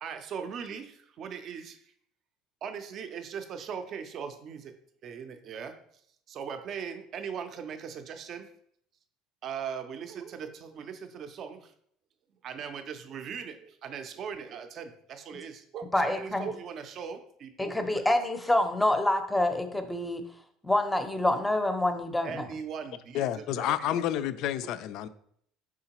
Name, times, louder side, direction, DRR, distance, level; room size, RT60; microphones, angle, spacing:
voice 1, 0.0-1.8 2.6-4.7 5.0-5.7 6.3-8.5 9.4-11.7 12.4-18.1 22.2-23.3 23.6-24.0, right 7 dB, 45° right, 0.5 m, -39 dB
voice 2, 15.9-16.5 17.6-20.2 20.6-22.4, left 1 dB, 5° left, 0.6 m, -27 dB
voice 3, 23.1-25.1, left 11 dB, 60° left, 0.3 m, -29 dB
4.8 x 3.6 x 2.9 m
supercardioid pair, 120°, 0 cm